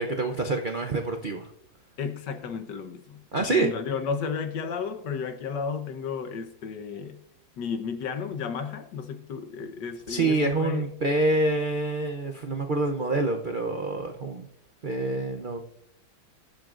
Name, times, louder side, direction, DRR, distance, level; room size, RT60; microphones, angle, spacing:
voice 1, 0.0-1.5 3.3-3.7 10.1-14.5 14.8-15.6, right 2 dB, 80° right, 0.4 m, -26 dB
voice 2, 2.0-7.2 7.6-11.0, left 6 dB, 70° left, 1.6 m, -33 dB
22.5 x 7.5 x 2.5 m
omnidirectional pair, 2.1 m